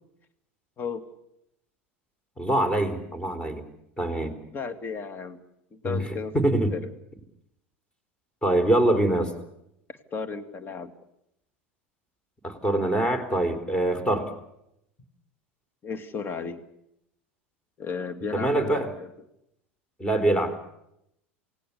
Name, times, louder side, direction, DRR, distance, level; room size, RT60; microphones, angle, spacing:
voice 1, 2.4-3.6 4.0-4.4 5.8-6.7 8.4-9.3 12.4-14.3 18.3-18.9 20.0-20.6, right 1 dB, 15° left, 11 dB, 3.9 m, -24 dB
voice 2, 4.5-5.4 5.7-6.8 9.9-10.9 15.8-16.6 17.8-19.1, left 5 dB, 30° left, 8 dB, 2.3 m, -34 dB
28.5 x 18.0 x 7.0 m, 0.81 s
hypercardioid pair, 80°, 7 cm